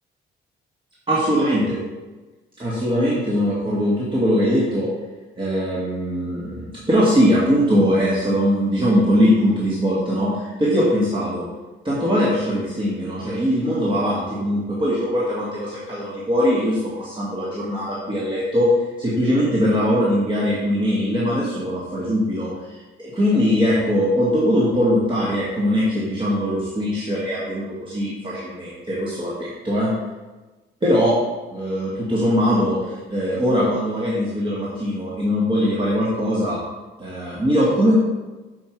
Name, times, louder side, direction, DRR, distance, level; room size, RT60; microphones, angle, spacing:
voice 1, 1.1-1.8 2.6-4.9 5.4-11.4 11.8-18.7 19.0-22.8 23.1-29.9 30.8-31.1 31.5-36.6 37.0-37.9, equal, 25° right, -7 dB, 1.7 m, -21 dB
6.6 x 5.2 x 4.6 m, 1.2 s
cardioid pair, 90°, 20 cm